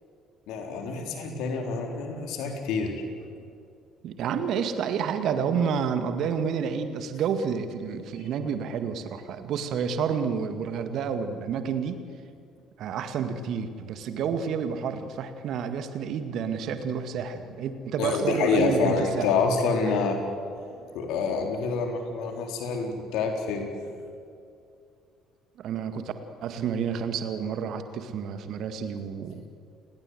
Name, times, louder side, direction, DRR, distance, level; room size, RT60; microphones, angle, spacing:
voice 1, 0.5-3.1 18.0-20.2 20.6-23.7, left 4 dB, 60° left, 4 dB, 4.0 m, -27 dB
voice 2, 4.0-12.0 12.8-19.3 19.9-20.0 25.6-26.1 26.4-29.5, right 7 dB, 55° right, 9 dB, 2.0 m, -29 dB
29.5 x 20.5 x 8.0 m, 2.4 s
figure-of-eight pair, 50°, 0 cm